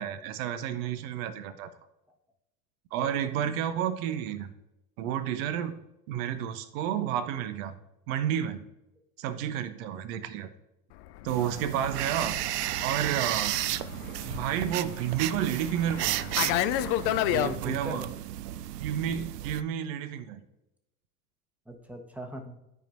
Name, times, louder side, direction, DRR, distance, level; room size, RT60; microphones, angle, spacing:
voice 1, 0.0-1.7 2.9-4.5 5.0-5.7 6.1-7.7 8.1-8.6 9.2-10.5 11.2-12.3 12.8-13.6 14.2-16.6 17.3-18.1 18.8-20.4, right 10 dB, 55° right, 10 dB, 1.0 m, -31 dB
Fixed-wing aircraft airplane, 11.0-17.5, left 13 dB, 40° left, 0.4 m, -32 dB
voice 2, 11.3-11.7 17.4-18.1 21.7-22.6, equal, 5° right, 4 dB, 1.1 m, -39 dB
sound 1, 11.3-19.6, right 13 dB, 80° right, 0.5 m, -33 dB
13.5 x 4.5 x 2.6 m, 0.94 s
hypercardioid pair, 90°, 47 cm